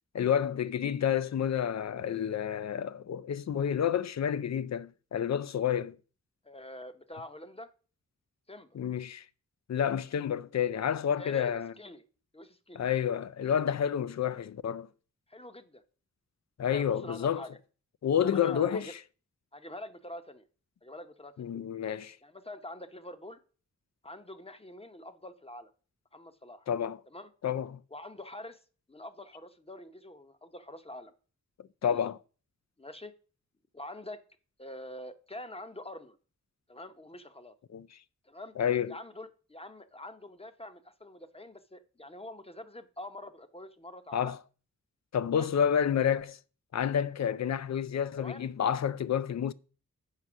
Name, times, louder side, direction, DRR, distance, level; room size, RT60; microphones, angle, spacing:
voice 1, 0.1-6.0 8.7-9.2 9.7-11.7 12.7-14.9 16.6-17.4 18.0-19.0 21.4-22.2 26.7-27.0 27.4-27.8 31.8-32.1 37.7-37.9 38.6-39.0 44.1-44.4 45.1-46.4 46.7-49.5, left 8 dB, 60° left, 0.5 m, -29 dB
voice 2, 6.4-7.7 8.5-8.8 10.9-12.0 12.3-12.9 15.3-15.8 16.7-17.5 18.2-18.9 19.5-20.4 20.8-21.5 22.2-23.4 24.0-25.7 26.1-26.7 27.1-27.3 27.9-28.6 28.9-31.1 31.8-32.0 32.8-33.1 33.7-34.2 34.6-36.2 36.7-37.6 38.2-38.5 38.9-44.3 45.3-45.5 48.2-48.5, left 1 dB, 20° left, 0.8 m, -45 dB
7.4 x 5.3 x 6.1 m
wide cardioid pair, 90°, 30 cm